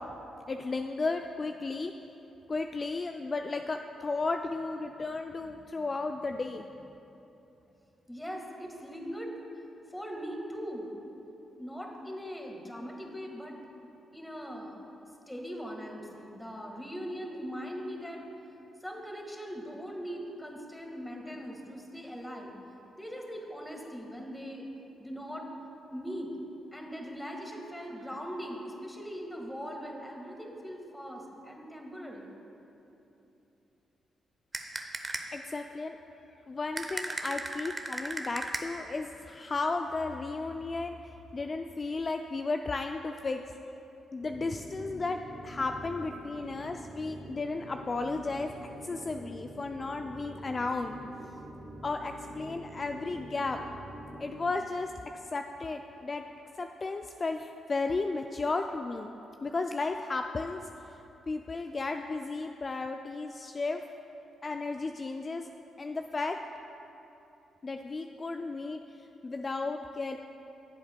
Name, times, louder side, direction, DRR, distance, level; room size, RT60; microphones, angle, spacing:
voice 1, 0.5-1.9 2.5-6.9 35.3-36.0 36.5-43.4 44.1-48.6 48.8-51.0 51.8-53.6 54.2-54.9 55.3-56.2 56.6-59.1 59.4-60.7 61.3-63.8 64.4-65.5 65.8-66.4 67.6-68.8 69.2-70.2, left 3 dB, 40° left, 5 dB, 0.3 m, -34 dB
voice 2, 8.1-9.3 9.9-10.9 11.6-13.6 14.1-14.8 15.3-18.3 18.8-22.5 22.9-24.6 25.0-25.5 25.9-26.3 26.7-32.3, equal, 10° left, 1 dB, 1.6 m, -40 dB
sound 1, 34.5-35.5 36.8-39.0, right 2 dB, 30° right, 0.7 m, -37 dB
sound 2, 44.1-54.6, right 1 dB, 45° right, 1.5 m, -46 dB
15.0 x 7.7 x 2.2 m, 3.0 s
hypercardioid pair, 45°, 0 cm